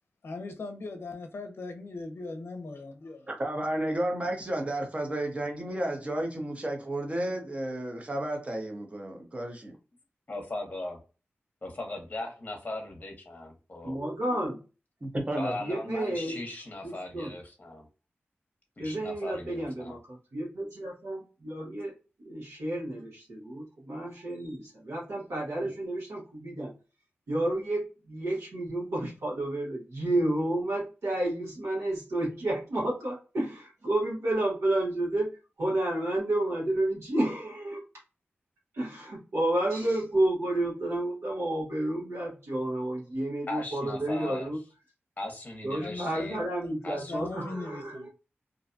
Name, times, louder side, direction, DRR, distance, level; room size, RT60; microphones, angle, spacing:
voice 1, 0.2-3.3 45.8-46.4 46.9-48.1, left 3 dB, 65° left, 0.5 m, -39 dB
voice 2, 3.3-9.7 15.0-15.6, right 1 dB, 30° right, 0.7 m, -32 dB
voice 3, 10.3-11.0 11.6-14.0 15.4-17.9 18.8-20.0 43.5-44.5 45.2-46.4 46.8-47.2, left 2 dB, 35° left, 0.8 m, -38 dB
voice 4, 13.8-14.6 15.6-16.4 16.8-17.3 18.8-26.7 27.3-37.8 38.7-44.6 45.6-48.1, right 1 dB, 80° right, 1.1 m, -31 dB
2.5 x 2.2 x 2.5 m
wide cardioid pair, 95°, 4 cm